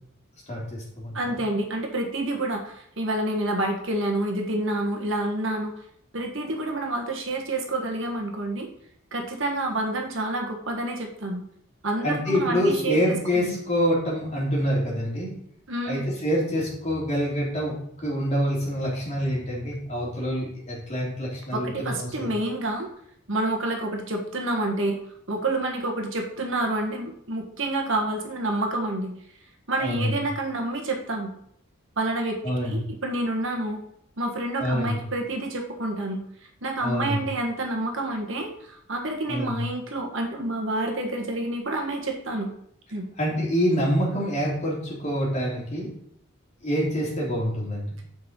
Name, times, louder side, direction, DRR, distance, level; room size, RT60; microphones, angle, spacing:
voice 1, 0.5-1.2 12.0-15.3 15.8-17.8 18.0-22.3 29.8-30.2 32.4-32.8 34.6-35.0 36.8-37.2 39.3-39.6 43.2-45.9 46.6-47.9, equal, 30° left, -4 dB, 3.4 m, -26 dB
voice 2, 1.1-5.7 6.1-8.7 9.1-11.4 11.8-13.5 15.7-16.0 21.5-22.9 23.3-25.0 25.3-29.1 29.7-31.3 32.0-33.8 34.2-36.2 36.6-42.5 42.9-43.1, right 1 dB, 60° right, 1 dB, 1.6 m, -28 dB
7.8 x 5.6 x 5.3 m, 0.71 s
head